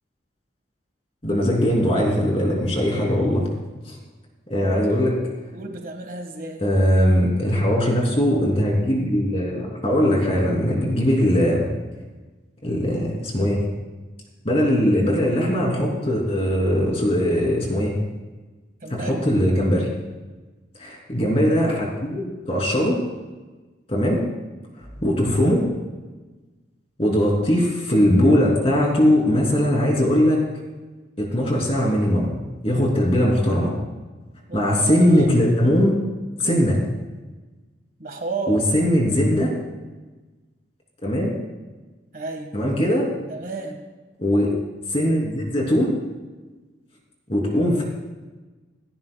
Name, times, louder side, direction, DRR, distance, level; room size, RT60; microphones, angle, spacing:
voice 1, 1.2-3.5 3.9-4.0 4.5-5.2 6.6-11.6 12.6-13.7 14.4-18.0 18.9-19.9 20.8-23.0 23.9-24.2 25.0-25.7 27.0-30.4 31.2-32.3 32.6-33.7 34.5-36.0 36.4-36.8 38.5-39.5 41.0-41.4 42.5-43.1 44.2-44.5 44.9-45.9 47.3-47.8, equal, 35° left, -2 dB, 3.0 m, -20 dB
voice 2, 5.5-6.6 18.8-19.2 34.5-35.3 38.0-38.6 42.1-42.5 43.3-43.8, right 3 dB, 50° right, 3 dB, 1.6 m, -32 dB
28.0 x 10.5 x 2.3 m, 1.2 s
head